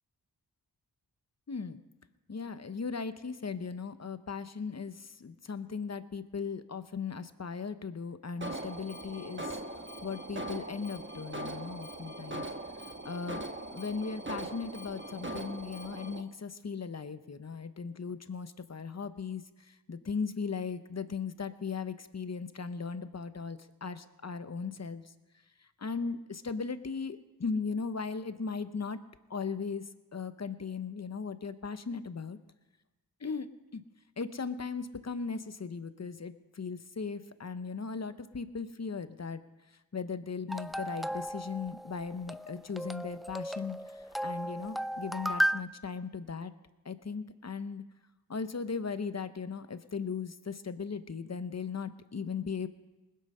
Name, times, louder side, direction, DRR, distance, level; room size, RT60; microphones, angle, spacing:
voice 1, 1.5-1.8 2.3-9.6 10.0-12.5 13.0-13.4 13.7-25.0 25.8-29.0 29.3-29.8 30.1-32.4 33.2-33.8 34.2-39.4 39.9-46.5 46.8-47.8 48.3-52.7, left 5 dB, 40° left, 12 dB, 0.8 m, -37 dB
Alarm, 8.4-16.2, right 1 dB, 30° right, 1.2 m, -41 dB
sound 1, 40.5-45.6, equal, ahead, 0.3 m, -35 dB
20.0 x 7.6 x 5.5 m, 1.1 s
cardioid pair, 45°, 40 cm